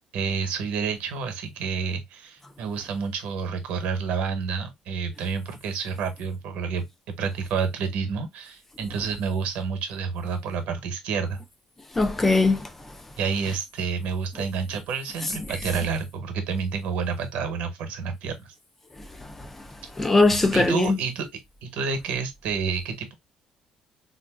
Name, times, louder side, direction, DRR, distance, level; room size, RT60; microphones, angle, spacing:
voice 1, 0.1-11.4 13.2-18.5 20.5-21.3 21.6-23.1, right 5 dB, 85° right, 0.8 m, -29 dB
voice 2, 11.9-13.0 19.0-21.0, left 3 dB, 10° left, 0.3 m, -22 dB
3.8 x 2.4 x 2.3 m
cardioid pair, 175°, 2 cm